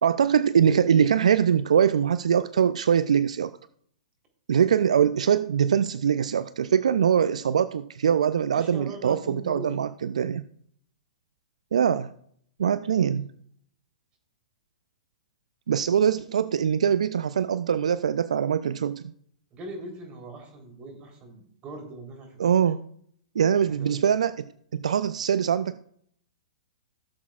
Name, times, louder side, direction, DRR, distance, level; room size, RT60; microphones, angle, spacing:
voice 1, 0.0-3.5 4.5-10.4 11.7-12.1 12.6-13.3 15.7-19.1 22.4-22.8 23.4-24.4 24.7-25.8, right 8 dB, 75° right, 15 dB, 0.4 m, -23 dB
voice 2, 8.5-9.8 12.9-13.1 19.5-22.4 23.6-24.0, right 1 dB, 30° right, 2 dB, 3.5 m, -41 dB
16.0 x 7.4 x 2.4 m, 0.65 s
hypercardioid pair, 120°, 4 cm